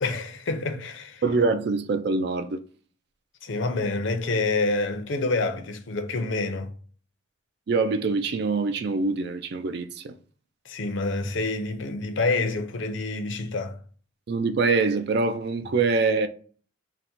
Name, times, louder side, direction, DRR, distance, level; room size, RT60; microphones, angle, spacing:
voice 1, 0.0-1.2 3.4-6.7 10.7-13.8, left 3 dB, 70° left, 0.6 m, -27 dB
voice 2, 1.2-2.6 7.7-10.1 14.3-16.3, right 4 dB, 55° right, 0.3 m, -24 dB
3.9 x 2.1 x 4.4 m
head